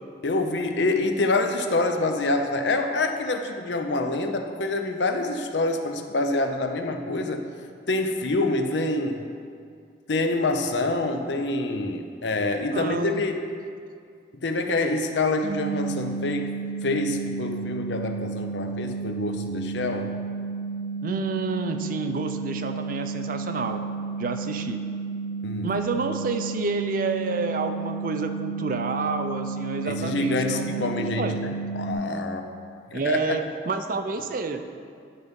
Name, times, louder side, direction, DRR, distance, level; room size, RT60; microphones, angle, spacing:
voice 1, 0.2-7.4 7.9-9.2 10.1-13.4 14.4-16.5 16.8-20.1 25.4-25.7 29.8-32.5 32.9-33.4, left 2 dB, 70° left, 5 dB, 0.6 m, -26 dB
voice 2, 12.7-13.2 21.0-23.8 24.2-24.8 25.6-31.4 32.9-34.7, right 3 dB, 45° right, 7 dB, 0.4 m, -29 dB
sound 1, 15.4-31.9, right 4 dB, 50° left, 1.2 m, -32 dB
11.0 x 4.0 x 5.2 m, 2.3 s
head